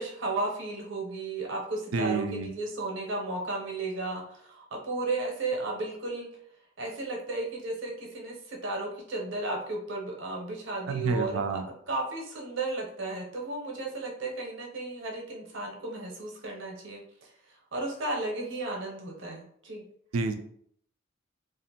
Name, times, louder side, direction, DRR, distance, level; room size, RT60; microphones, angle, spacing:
voice 1, 0.0-6.3 6.8-11.4 11.9-17.3 17.7-19.8, right 2 dB, 65° right, 0 dB, 0.7 m, -34 dB
voice 2, 1.9-2.5 10.9-11.6 20.1-20.4, right 4 dB, 85° right, 8 dB, 0.4 m, -28 dB
2.5 x 2.4 x 2.8 m, 0.66 s
head